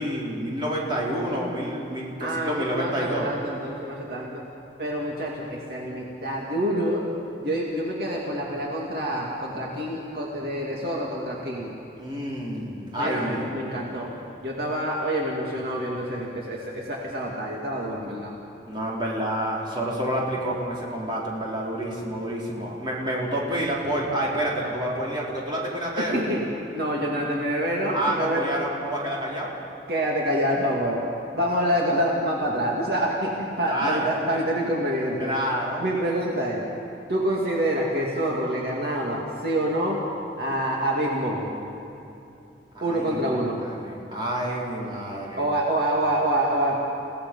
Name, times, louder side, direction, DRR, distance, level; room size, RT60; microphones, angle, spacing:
voice 1, 0.0-3.3 12.0-13.5 18.6-26.2 27.9-29.5 33.7-34.1 35.2-35.8 42.7-45.4, right 1 dB, 25° right, -5 dB, 4.5 m, -28 dB
voice 2, 2.2-4.4 4.8-7.0 7.4-11.7 13.0-14.1 14.4-18.3 26.0-26.4 26.7-28.5 29.9-31.0 31.3-35.3 35.8-36.6 37.1-40.0 40.4-41.5 42.8-43.6 45.4-46.8, right 1 dB, 60° right, -3 dB, 2.5 m, -26 dB
30.0 x 17.5 x 5.6 m, 2.8 s
head